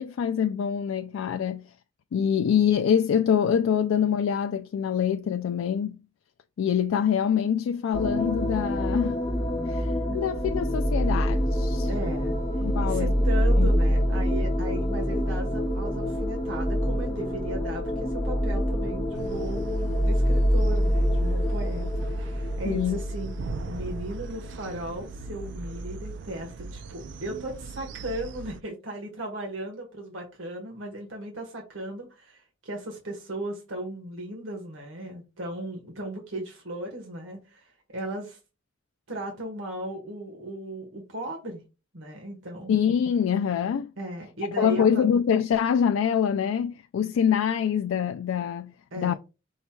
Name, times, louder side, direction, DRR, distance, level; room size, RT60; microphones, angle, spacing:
voice 1, 0.0-1.7 2.1-6.0 6.6-9.2 9.7-11.9 12.6-13.1 13.5-13.7 22.6-23.0 42.7-43.9 44.6-49.1, left 8 dB, 90° left, 0.3 m, -25 dB
sound 1, 7.9-25.5, equal, 20° left, 0.9 m, -26 dB
voice 2, 11.9-12.4 12.8-23.3 23.7-38.4 39.1-41.6 41.9-42.7 44.0-45.0 48.9-49.2, right 1 dB, 85° right, 1.3 m, -36 dB
sound 2, 19.1-28.6, right 4 dB, 65° right, 0.3 m, -40 dB
5.5 x 2.3 x 4.3 m
head